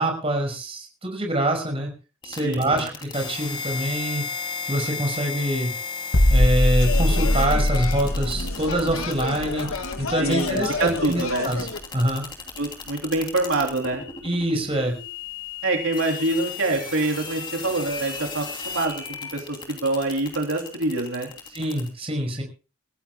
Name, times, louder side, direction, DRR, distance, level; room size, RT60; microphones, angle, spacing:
voice 1, 0.0-1.9 2.2-4.2 4.7-5.7 6.3-9.7 10.0-11.7 11.9-12.2 14.2-15.0 21.5-22.4, right 1 dB, 25° right, 3 dB, 5.6 m, -25 dB
sound 1, 2.2-21.9, left 5 dB, 20° left, 2.8 m, -35 dB
voice 2, 2.4-2.8 10.2-11.5 12.6-14.0 15.6-19.0 19.3-21.3, right 2 dB, 75° right, 2 dB, 3.0 m, -25 dB
sound 2, 6.1-11.8 12.1-12.3, left 1 dB, 55° left, 1.2 m, -23 dB
sound 3, 6.8-11.8, left 4 dB, 85° left, 1.8 m, -31 dB
27.0 x 15.0 x 2.2 m, 0.33 s
head